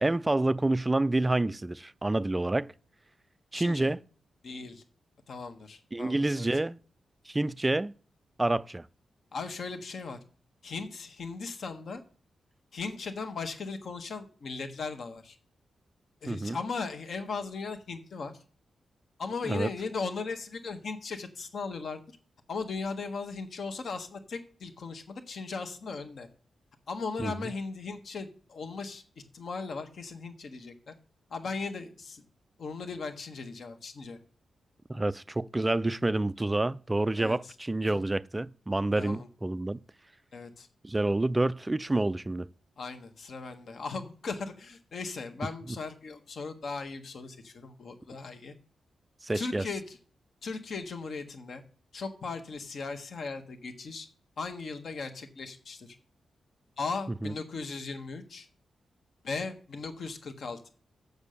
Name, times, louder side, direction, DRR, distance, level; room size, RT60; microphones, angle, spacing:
voice 1, 0.0-2.7 3.5-4.0 5.9-6.8 7.3-8.0 8.4-8.9 16.3-16.6 19.5-19.7 27.2-27.3 34.9-39.8 40.8-42.5 49.2-49.6 57.2-57.3, right 2 dB, 15° right, 0.3 m, -28 dB
voice 2, 3.5-3.9 4.4-4.8 5.3-6.6 9.3-10.2 10.6-12.0 12.7-15.4 16.2-18.4 19.2-22.0 22.5-26.3 26.9-29.0 29.3-30.9 31.3-32.2 32.6-34.2 37.2-37.5 37.8-38.0 38.9-39.3 40.3-40.7 42.8-48.5 49.3-50.0 50.4-51.6 51.9-54.1 54.4-56.0 56.8-58.5 59.2-60.7, left 4 dB, 55° left, 1.3 m, -37 dB
7.2 x 6.6 x 6.7 m
wide cardioid pair, 130°, 0 cm